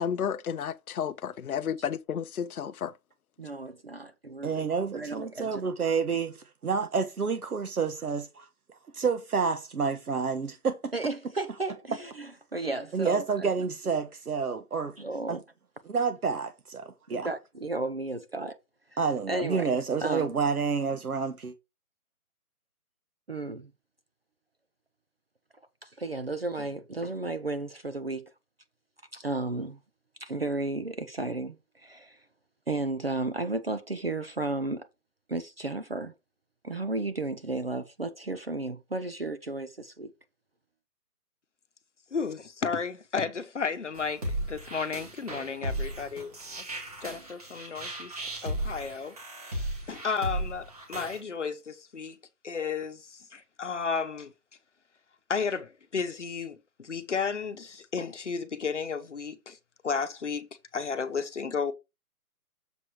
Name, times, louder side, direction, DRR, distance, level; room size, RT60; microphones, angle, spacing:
voice 1, 0.0-2.9, left 8 dB, 70° left, 0.7 m, -32 dB
voice 2, 3.4-4.6 4.9-5.6 10.9-13.5 15.0-15.4 17.1-18.6 19.3-19.7 20.0-20.3 23.3-23.7 25.8-28.3 29.1-29.8 30.2-32.2 32.7-34.9 35.3-36.1 36.6-40.1, right 2 dB, 40° right, 0.7 m, -33 dB
voice 3, 4.4-8.5 8.9-10.9 12.9-14.9 15.3-15.4 15.8-17.3 19.0-21.5, right 5 dB, 70° right, 1.4 m, -29 dB
voice 4, 42.1-46.3 46.7-46.8 47.0-48.1 48.4-49.2 49.4-52.2 52.4-54.3 55.3-59.6 59.8-60.5 60.7-61.7, left 5 dB, 50° left, 1.0 m, -33 dB
sound 1, 43.9-51.2, right 1 dB, 25° right, 2.0 m, -35 dB
7.2 x 4.7 x 4.8 m
hypercardioid pair, 180°, 46 cm